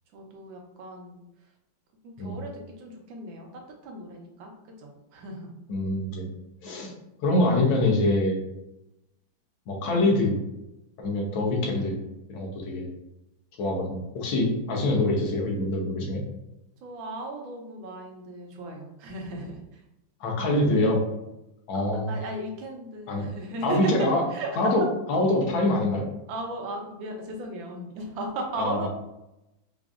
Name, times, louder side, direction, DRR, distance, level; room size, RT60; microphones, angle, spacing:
voice 1, 0.1-1.2 2.0-3.5 3.8-4.5 4.8-5.5 16.8-19.8 21.7-23.9 24.3-24.6 26.3-28.9, right 2 dB, 75° right, 2 dB, 1.5 m, -36 dB
voice 2, 5.7-6.3 6.6-6.9 7.2-8.4 9.7-10.4 11.0-12.0 12.3-12.9 13.6-16.2 20.2-21.0 21.7-22.2 23.1-23.2 23.6-24.3 24.6-24.8 25.1-26.0 28.6-28.8, left 2 dB, 85° left, 0 dB, 1.6 m, -24 dB
4.9 x 2.6 x 2.4 m, 0.90 s
omnidirectional pair, 2.1 m